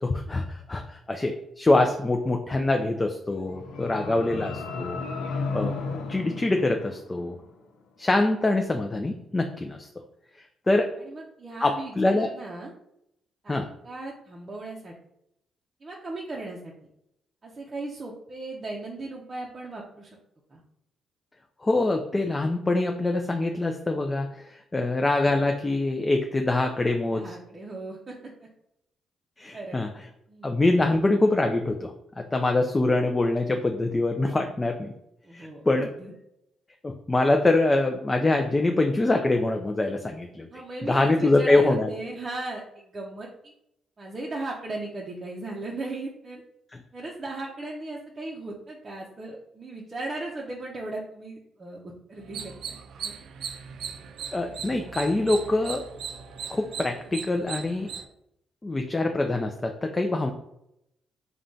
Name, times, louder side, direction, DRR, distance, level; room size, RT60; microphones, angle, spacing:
voice 1, 0.0-5.0 5.5-5.8 6.1-7.4 8.0-9.9 10.7-10.9 11.6-12.3 13.5-13.7 21.6-27.4 29.4-29.9 30.4-34.9 35.3-35.9 36.8-40.5 40.9-41.9 54.3-55.8 56.5-57.9 58.6-60.3, left 2 dB, 20° left, 4 dB, 0.3 m, -24 dB
sound 1, 3.3-7.5, left 4 dB, 80° left, 0.5 m, -34 dB
voice 2, 3.8-4.3 5.1-5.5 11.0-12.7 13.4-13.6 13.8-14.9 15.8-16.7 17.4-20.2 20.5-20.6 27.0-28.5 29.5-29.8 30.3-30.5 35.2-35.6 36.0-36.1 40.5-43.5 44.0-46.4 46.9-53.1, right 2 dB, 30° right, -3 dB, 0.6 m, -37 dB
sound 2, 52.2-58.1, right 7 dB, 70° right, 0.3 m, -38 dB
3.7 x 2.2 x 3.7 m, 0.80 s
cardioid pair, 90°, 0 cm